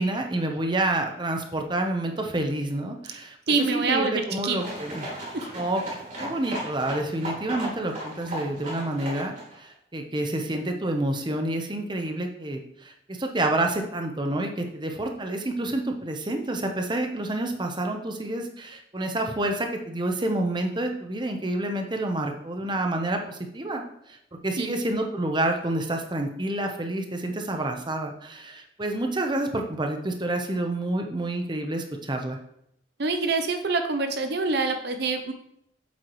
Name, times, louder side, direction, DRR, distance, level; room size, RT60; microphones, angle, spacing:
voice 1, 0.0-5.1 5.5-5.8 6.2-23.8 24.1-24.2 24.4-32.4, right 1 dB, 25° right, 4 dB, 0.9 m, -28 dB
voice 2, 3.5-4.6 5.1-5.5 24.6-24.7 33.0-35.3, right 3 dB, 60° right, 6 dB, 0.7 m, -26 dB
sound 1, 4.6-9.5, right 1 dB, 40° right, 3.3 m, -36 dB
8.3 x 7.9 x 3.1 m, 0.74 s
head